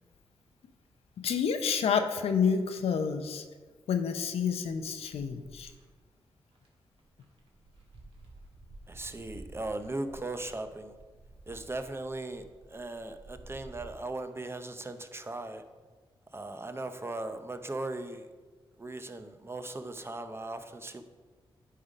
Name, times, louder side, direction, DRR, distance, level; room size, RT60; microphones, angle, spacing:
voice 1, 1.2-3.4 3.9-5.7, left 6 dB, 85° left, 7 dB, 0.7 m, -29 dB
sound 1, 5.1-5.8 6.5-6.7 7.0-13.9, right 2 dB, 65° right, 1.6 m, -52 dB
voice 2, 8.9-11.0 11.5-15.6 16.3-18.3 18.8-21.0, right 2 dB, 25° right, 8 dB, 0.6 m, -38 dB
9.9 x 3.7 x 5.1 m, 1.4 s
cardioid pair, 70°, 10 cm